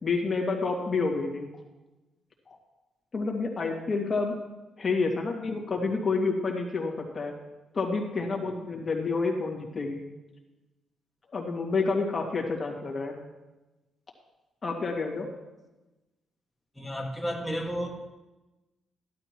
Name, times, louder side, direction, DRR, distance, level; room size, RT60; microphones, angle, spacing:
voice 1, 0.0-1.5 2.5-2.6 3.1-4.3 4.8-7.3 7.7-10.0 11.3-13.2 14.6-15.3, left 4 dB, 30° left, -1 dB, 2.1 m, -29 dB
voice 2, 16.8-17.9, equal, ahead, -1 dB, 1.9 m, -32 dB
14.5 x 11.5 x 3.1 m, 1.1 s
cardioid pair, 130°, 0 cm